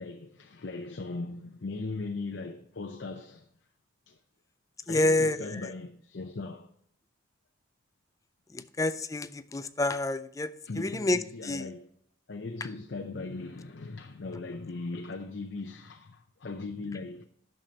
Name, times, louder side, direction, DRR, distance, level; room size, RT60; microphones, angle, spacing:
voice 1, 0.0-3.5 4.1-4.2 4.9-6.7 10.7-11.9 12.3-17.2, left 3 dB, 60° left, 0.6 m, -38 dB
voice 2, 4.9-5.7 8.5-11.7, left 2 dB, 15° left, 0.4 m, -29 dB
10.5 x 6.6 x 2.8 m
head